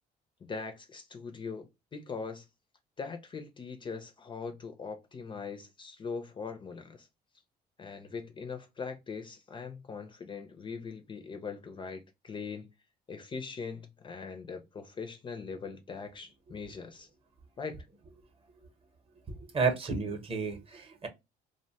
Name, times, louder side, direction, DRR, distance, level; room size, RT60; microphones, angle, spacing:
voice 1, 0.4-2.5 3.0-7.1 7.8-12.7 13.1-17.1 17.6-17.8, left 5 dB, 30° left, 0.4 m, -41 dB
voice 2, 19.5-21.1, right 4 dB, 35° right, 0.7 m, -31 dB
2.5 x 2.1 x 2.7 m
cardioid pair, 110°, 17 cm